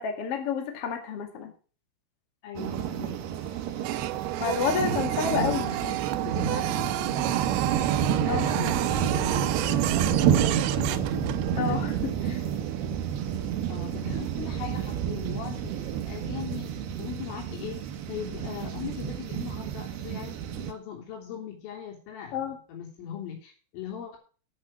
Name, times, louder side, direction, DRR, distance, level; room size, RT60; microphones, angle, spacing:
voice 1, 0.0-1.5 4.4-5.8 8.3-8.4 11.6-11.9 22.3-22.6, left 6 dB, 50° left, 5 dB, 1.8 m, -29 dB
voice 2, 2.4-3.2 4.8-7.2 7.9-12.4 13.7-24.2, left 8 dB, 75° left, 1 dB, 5.8 m, -40 dB
sound 1, 2.6-20.7, right 9 dB, 70° right, 2.7 m, -29 dB
Printer, 3.8-11.7, right 14 dB, 90° right, 2.5 m, -31 dB
9.8 x 8.8 x 6.0 m, 0.38 s
omnidirectional pair, 5.8 m